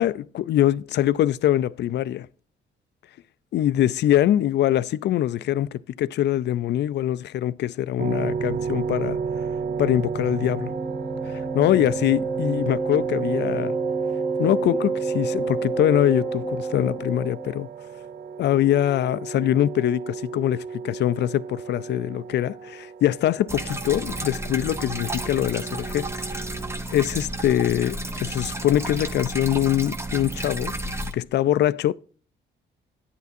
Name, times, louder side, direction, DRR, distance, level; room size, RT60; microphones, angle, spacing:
voice 1, 0.0-2.3 3.5-9.2 9.8-10.7 11.3-13.8 14.4-17.7 18.4-26.1 26.9-31.9, left 12 dB, 60° left, 0.4 m, -23 dB
sound 1, 8.0-26.8, right 5 dB, 45° right, 0.4 m, -33 dB
Wind instrument woodwind instrument, 10.5-17.5, right 4 dB, 10° left, 1.4 m, -29 dB
sound 2, 23.5-31.1, right 2 dB, 15° right, 0.7 m, -32 dB
10.0 x 8.3 x 2.6 m
cardioid pair, 90°, 20 cm